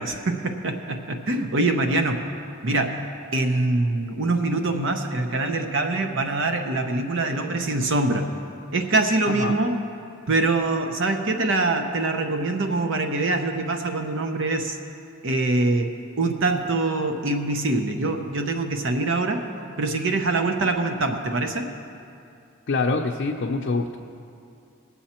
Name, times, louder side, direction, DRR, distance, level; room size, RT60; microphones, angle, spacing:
voice 1, 0.0-2.2 2.6-3.0 3.3-8.3 8.7-9.8 10.3-14.8 15.2-15.9 16.2-19.4 19.8-21.6, right 2 dB, 65° right, 5 dB, 0.8 m, -24 dB
voice 2, 9.3-9.6 22.7-24.0, left 3 dB, 55° left, 0 dB, 0.5 m, -25 dB
19.0 x 7.1 x 4.3 m, 2.5 s
head